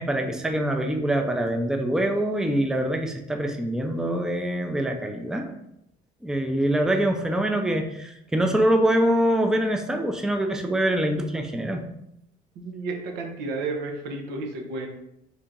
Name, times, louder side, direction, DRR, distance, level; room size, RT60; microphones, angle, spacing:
voice 1, 0.0-5.6 6.2-11.8, right 1 dB, 5° right, 4 dB, 0.4 m, -24 dB
voice 2, 12.6-14.9, right 3 dB, 85° right, 3 dB, 0.8 m, -32 dB
3.6 x 2.8 x 3.6 m, 0.78 s
cardioid pair, 110°, 17 cm